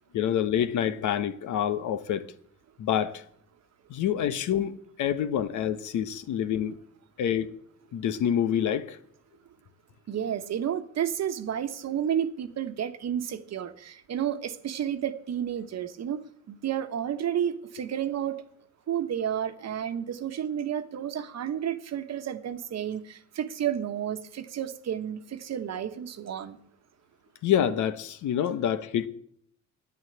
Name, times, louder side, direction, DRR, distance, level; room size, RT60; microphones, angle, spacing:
voice 1, 0.1-2.3 2.8-3.2 3.9-6.8 7.2-7.5 7.9-9.0 27.4-29.1, left 9 dB, 75° left, 1.1 m, -27 dB
voice 2, 10.1-18.4 18.9-26.6, right 9 dB, 60° right, 1.2 m, -31 dB
9.7 x 9.5 x 8.0 m
cardioid pair, 90°, 30 cm